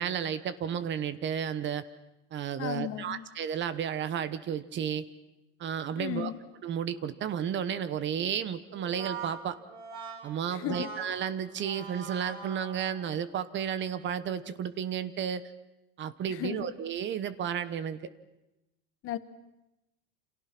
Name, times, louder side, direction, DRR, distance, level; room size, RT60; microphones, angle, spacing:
voice 1, 0.0-1.9 2.3-5.1 5.6-6.3 6.6-9.6 10.2-15.5 16.0-18.1, right 8 dB, 30° right, 1.1 m, -32 dB
voice 2, 2.6-3.2 6.0-6.4 10.5-10.9 16.3-16.7 19.0-19.2, left 12 dB, 40° left, 1.3 m, -35 dB
Brass instrument, 8.7-13.2, right 5 dB, 70° right, 7.5 m, -43 dB
29.0 x 27.5 x 6.0 m
cardioid pair, 155°, 35 cm